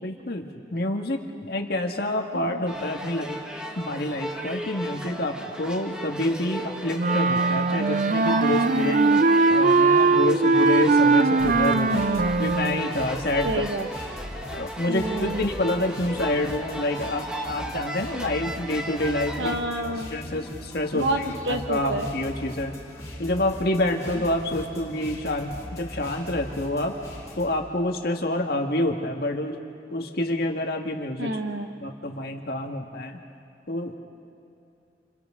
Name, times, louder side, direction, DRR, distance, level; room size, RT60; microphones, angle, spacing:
voice 1, 0.0-3.4 3.8-9.0 9.5-12.0 12.4-13.6 14.5-19.6 20.1-22.7 23.2-27.0 27.4-29.6 29.9-31.4 31.8-33.2 33.7-34.0, left 1 dB, 60° left, 3 dB, 1.8 m, -27 dB
sound 1, 2.7-19.5, right 1 dB, 5° right, 1.3 m, -35 dB
Wind instrument woodwind instrument, 7.0-12.9, right 3 dB, 45° right, 0.5 m, -20 dB
voice 2, 8.7-9.2 11.8-12.4 13.4-13.9 14.9-15.4 19.4-20.1 20.9-22.1 31.2-31.7, right 1 dB, 85° right, 5 dB, 1.7 m, -29 dB
sound 2, 11.4-27.5, equal, 20° left, 3.5 m, -40 dB
29.0 x 27.5 x 3.8 m, 2.7 s
head